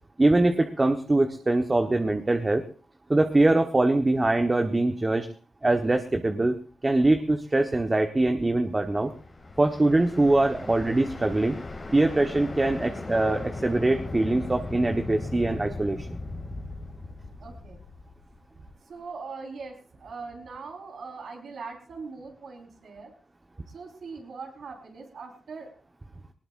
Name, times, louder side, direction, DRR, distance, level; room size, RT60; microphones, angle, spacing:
voice 1, 0.2-2.6 3.1-5.3 5.6-6.6 6.8-9.1 9.6-11.6 11.9-16.1, right 2 dB, 25° right, 5 dB, 1.3 m, -23 dB
sound 1, 8.7-18.7, left 2 dB, 30° left, 2.6 m, -38 dB
voice 2, 17.4-17.8 18.9-19.7 20.0-23.1 23.7-25.7, right 4 dB, 70° right, 2 dB, 4.6 m, -41 dB
19.5 x 19.0 x 2.6 m, 0.39 s
cardioid pair, 80°, 0 cm